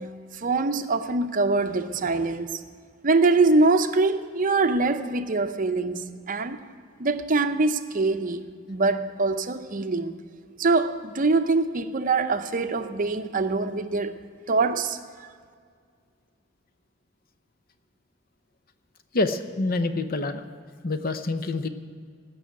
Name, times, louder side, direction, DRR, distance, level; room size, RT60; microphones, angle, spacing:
voice 1, 0.0-2.6 3.0-6.7 7.0-10.2 10.6-14.1 14.5-15.3, right 3 dB, 40° right, 0.7 m, -24 dB
voice 2, 19.1-20.4 20.8-21.7, left 2 dB, 45° left, 0.8 m, -26 dB
16.5 x 6.2 x 9.4 m
head